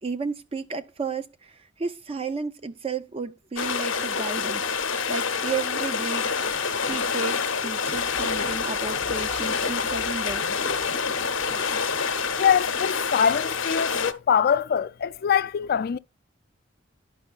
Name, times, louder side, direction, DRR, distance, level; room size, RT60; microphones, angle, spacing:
voice 1, 0.0-6.3 6.8-10.4, right 4 dB, 30° right, 0.4 m, -33 dB
sound 1, 3.6-14.1, left 5 dB, 75° left, 0.8 m, -27 dB
sound 2, 7.8-12.9, equal, 60° right, 3.8 m, -48 dB
voice 2, 12.4-16.0, left 7 dB, 50° left, 0.3 m, -23 dB
12.0 x 5.2 x 2.3 m
head